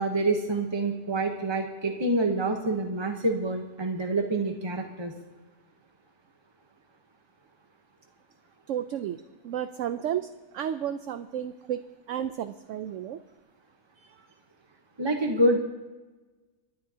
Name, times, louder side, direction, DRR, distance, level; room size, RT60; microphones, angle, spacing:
voice 1, 0.0-5.1 15.0-15.6, right 2 dB, 20° right, 3 dB, 0.8 m, -27 dB
voice 2, 8.7-9.2 9.4-13.2 14.0-14.3, right 10 dB, 65° right, 10 dB, 0.8 m, -33 dB
29.5 x 10.5 x 2.8 m, 1.2 s
omnidirectional pair, 1.6 m